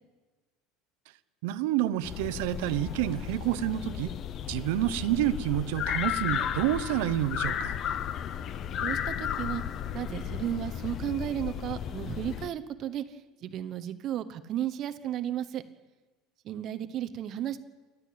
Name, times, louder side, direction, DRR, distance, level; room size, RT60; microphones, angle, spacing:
voice 1, 1.4-4.1 4.5-7.8, right 13 dB, 65° right, 14 dB, 1.0 m, -28 dB
sound 1, 2.0-12.5, left 9 dB, 30° left, 0.6 m, -34 dB
voice 2, 8.8-9.6 9.9-15.6 16.4-17.6, right 11 dB, 30° right, 11 dB, 1.1 m, -34 dB
29.0 x 12.5 x 8.7 m, 1.3 s
cardioid pair, 175°, 0 cm